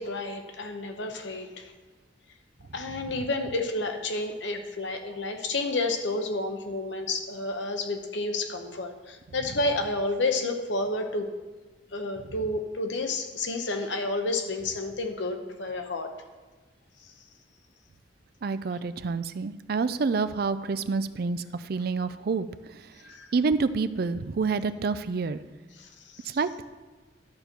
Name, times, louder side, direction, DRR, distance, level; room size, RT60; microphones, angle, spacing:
voice 1, 0.0-1.7 2.7-11.3 11.9-16.1 23.0-23.3 25.8-26.3, left 2 dB, 75° left, 6 dB, 0.9 m, -30 dB
voice 2, 18.4-22.5 22.8-22.9 23.3-25.4 26.2-26.6, right 4 dB, 55° right, 13 dB, 0.4 m, -28 dB
11.5 x 4.5 x 6.6 m, 1.3 s
head